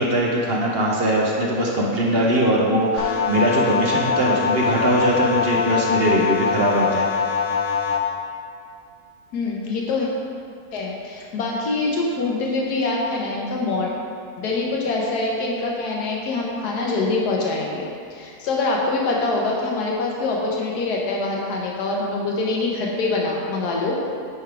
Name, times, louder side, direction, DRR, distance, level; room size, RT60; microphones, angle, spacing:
voice 1, 0.0-7.1, right 1 dB, 50° right, -2 dB, 0.8 m, -21 dB
sound 1, 3.0-8.0, left 6 dB, 60° left, 1.1 m, -23 dB
voice 2, 9.3-10.1 10.7-13.9 14.4-17.8 18.1-24.0, left 3 dB, 80° left, -2 dB, 1.5 m, -24 dB
9.7 x 3.5 x 4.7 m, 2.2 s
omnidirectional pair, 1.7 m